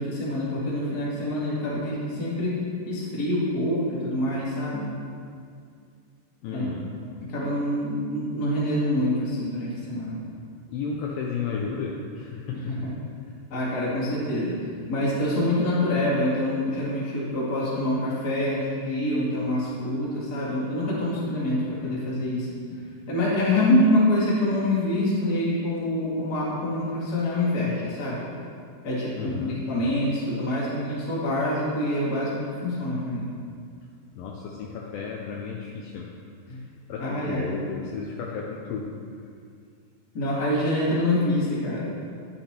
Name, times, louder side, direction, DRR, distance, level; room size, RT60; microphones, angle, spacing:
voice 1, 0.0-2.5 2.9-4.9 6.5-6.7 7.3-10.2 12.5-12.6 13.5-14.5 14.9-22.5 23.1-28.2 28.8-32.3 32.6-33.3 36.5-36.6 37.0-37.5 40.1-41.9, left 1 dB, 35° left, -8 dB, 1.6 m, -26 dB
voice 2, 6.4-6.8 10.7-12.7 23.5-23.6 29.2-29.6 34.1-36.1 36.6-39.0, left 5 dB, 90° left, -1 dB, 2.0 m, -33 dB
10.0 x 8.2 x 2.9 m, 2.3 s
omnidirectional pair, 4.9 m